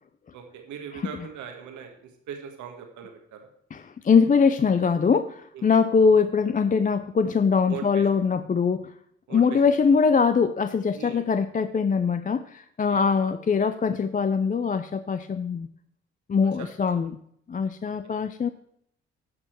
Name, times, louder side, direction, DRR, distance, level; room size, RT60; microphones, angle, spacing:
voice 1, 0.3-3.4 5.5-5.7 7.7-8.0 9.3-9.4 10.9-11.2 12.9-13.0 16.6-16.7, right 7 dB, 80° right, 4 dB, 1.6 m, -40 dB
voice 2, 0.9-1.3 3.7-8.9 9.3-15.7 16.3-17.2 17.5-18.5, left 5 dB, 30° left, 11 dB, 0.5 m, -22 dB
11.0 x 6.2 x 4.5 m, 0.68 s
supercardioid pair, 55°, 29 cm